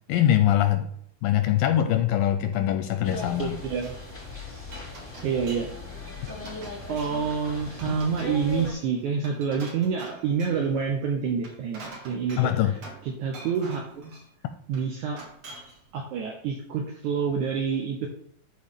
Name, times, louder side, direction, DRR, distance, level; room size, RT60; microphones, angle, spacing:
voice 1, 0.1-0.9 1.2-3.6 12.4-12.7, left 12 dB, 80° left, 8 dB, 2.1 m, -22 dB
Glass, 2.5-4.0 4.4-5.8 6.0-7.3 7.7-10.7 11.3-13.1 13.3-14.3 14.7-15.8, right 2 dB, 50° right, 1.8 m, -46 dB
sound 1, 3.0-8.7, left 3 dB, 10° left, 1.3 m, -38 dB
voice 2, 3.4-4.0 5.2-6.0 6.9-12.8 13.0-14.2 14.7-15.2 15.9-18.1, right 6 dB, 80° right, 1 dB, 1.8 m, -28 dB
12.5 x 4.4 x 3.6 m, 0.64 s
omnidirectional pair, 4.3 m